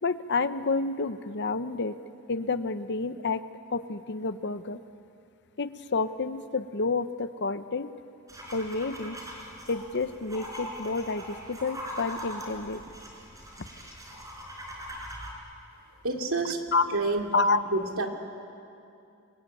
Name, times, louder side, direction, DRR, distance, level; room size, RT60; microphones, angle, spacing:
voice 1, 0.0-2.0 2.3-3.4 3.7-4.8 5.6-7.9 8.5-9.2 9.7-12.8 16.7-16.9 17.3-17.6, left 3 dB, 55° left, 12 dB, 0.9 m, -29 dB
sound 1, 8.3-15.3, equal, 15° right, 4.6 m, -41 dB
voice 2, 16.0-17.3 17.7-18.1, right 3 dB, 70° right, 2 dB, 2.7 m, -29 dB
27.5 x 22.5 x 9.2 m, 2.6 s
head